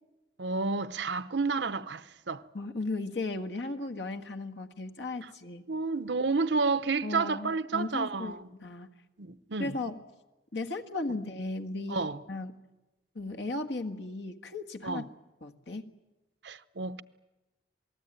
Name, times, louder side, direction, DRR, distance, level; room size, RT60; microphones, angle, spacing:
voice 1, 0.4-2.4 5.2-5.3 5.7-8.5 9.2-9.8 11.9-12.2 14.8-15.1 16.4-17.0, right 4 dB, 85° right, 0.8 m, -30 dB
voice 2, 2.5-5.6 7.0-8.9 9.6-10.0 10.5-12.0 12.3-12.6 13.1-15.0 15.4-15.9, left 2 dB, 85° left, 1.6 m, -36 dB
27.0 x 19.0 x 9.0 m
head